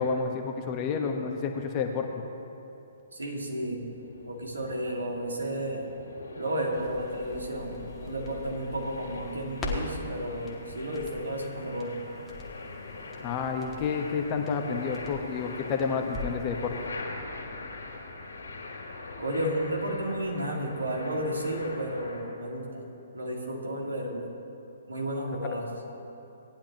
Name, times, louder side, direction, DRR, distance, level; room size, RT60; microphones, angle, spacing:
voice 1, 0.0-2.1 13.2-16.8 25.5-25.6, left 5 dB, 30° left, 3 dB, 1.0 m, -30 dB
voice 2, 3.1-3.9 4.3-5.9 6.3-11.9 19.2-22.9 23.1-24.3 24.9-25.7, right 1 dB, 70° right, -1 dB, 2.1 m, -32 dB
sound 1, 3.4-22.2, left 3 dB, 65° left, 2.5 m, -43 dB
Crackle, 6.7-16.5 16.8-16.9, left 2 dB, 15° left, 1.4 m, -43 dB
18.0 x 10.0 x 3.0 m, 2.9 s
figure-of-eight pair, 125°, 0 cm